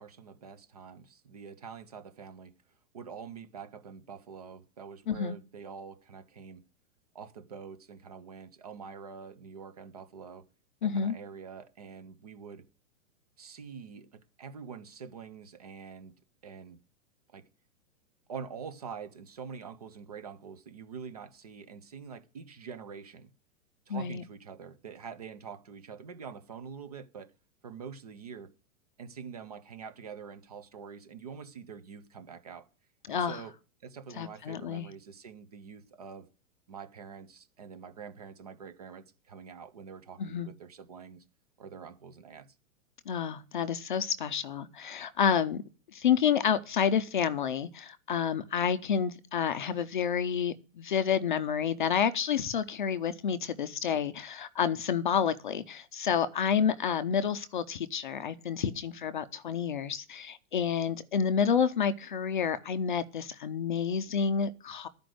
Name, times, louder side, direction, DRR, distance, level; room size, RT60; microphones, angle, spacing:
voice 1, 0.0-2.5 2.9-6.6 7.1-10.5 10.8-12.6 13.4-16.1 16.4-16.8 17.3-17.4 18.3-23.3 23.9-27.3 27.6-28.5 29.0-32.7 33.1-33.5 33.8-36.3 36.7-41.2 41.6-42.5, right 6 dB, 30° right, 0.5 m, -45 dB
voice 2, 5.1-5.4 10.8-11.1 23.9-24.2 33.1-33.4 34.2-34.9 40.2-40.5 43.1-45.6 45.9-64.9, left 7 dB, 35° left, 0.5 m, -29 dB
12.5 x 5.2 x 7.6 m
supercardioid pair, 180°, 41 cm